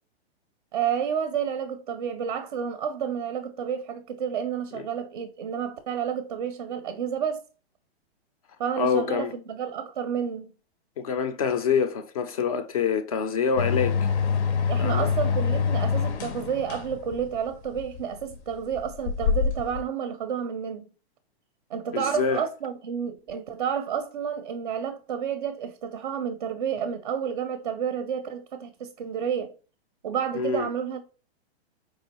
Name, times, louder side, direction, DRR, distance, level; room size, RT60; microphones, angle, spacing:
voice 1, 0.7-7.4 8.6-10.5 14.7-20.9 21.7-29.5 30.0-31.0, right 8 dB, 35° right, 0.4 m, -30 dB
voice 2, 8.8-9.3 11.0-14.1 14.8-15.1 21.9-22.4 30.3-30.7, left 6 dB, 35° left, 0.4 m, -26 dB
sound 1, 13.6-19.8, left 6 dB, 80° left, 0.7 m, -26 dB
4.7 x 3.0 x 2.9 m
hypercardioid pair, 170°, 33 cm